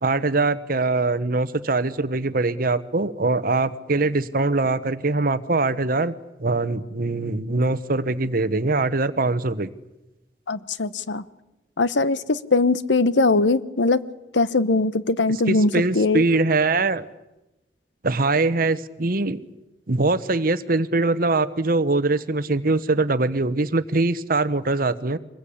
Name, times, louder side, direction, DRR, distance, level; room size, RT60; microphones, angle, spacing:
voice 1, 0.0-6.1 6.4-9.7 15.5-17.1 18.0-19.4 19.9-25.2, right 3 dB, 50° right, 13 dB, 1.1 m, -22 dB
voice 2, 10.5-11.2 11.8-14.0 14.3-16.2, left 3 dB, 85° left, 15 dB, 1.0 m, -21 dB
25.0 x 20.5 x 8.6 m, 0.97 s
head